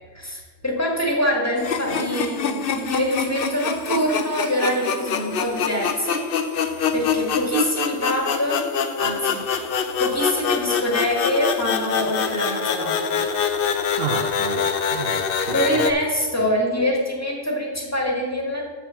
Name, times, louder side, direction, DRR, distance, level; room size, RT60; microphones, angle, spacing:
voice 1, 0.1-6.3 6.9-8.7 9.0-9.6 10.0-13.2 15.5-18.7, equal, 15° left, 1.5 m, -25 dB
sound 1, 1.6-15.9, left 6 dB, 55° left, 0.7 m, -25 dB
voice 2, 13.7-15.6 16.4-16.5, right 6 dB, 65° right, 0.7 m, -32 dB
7.2 x 5.0 x 6.9 m
omnidirectional pair, 1.2 m